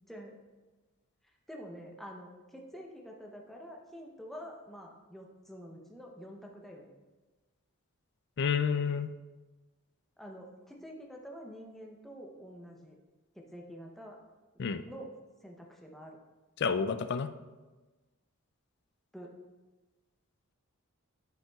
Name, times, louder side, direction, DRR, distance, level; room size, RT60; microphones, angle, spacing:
voice 1, 1.5-6.9 10.2-13.0 13.3-14.2 14.9-15.1 15.4-16.2 19.1-19.3, equal, ahead, 0 dB, 0.7 m, -47 dB
voice 2, 8.4-9.1 14.6-14.8 16.6-17.3, left 6 dB, 50° left, 11 dB, 0.3 m, -29 dB
10.0 x 5.7 x 2.3 m, 1.2 s
head